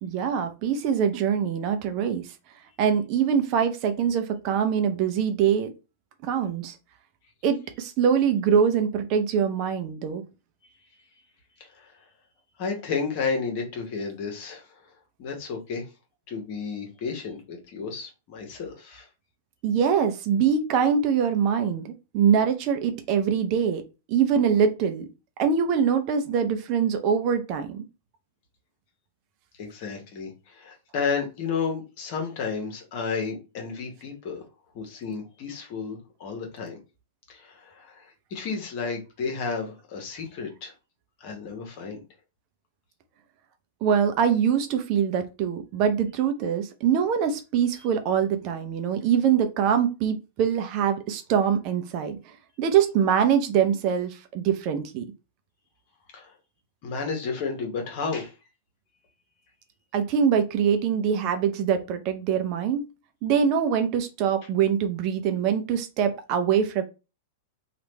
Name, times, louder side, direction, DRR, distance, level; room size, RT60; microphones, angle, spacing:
voice 1, 0.0-2.3 2.8-5.7 6.2-6.7 7.4-10.2 19.6-23.8 24.1-25.1 25.4-27.8 43.8-55.0 59.9-62.8 63.2-66.8, right 7 dB, 40° right, 0.6 m, -24 dB
voice 2, 11.6-11.9 12.6-14.8 15.2-15.9 16.3-19.1 29.6-34.4 34.7-36.8 37.3-40.7 41.2-42.0 56.1-56.3 56.8-58.3, left 5 dB, 45° left, 1.2 m, -32 dB
3.1 x 2.5 x 3.2 m
figure-of-eight pair, 95°, 0 cm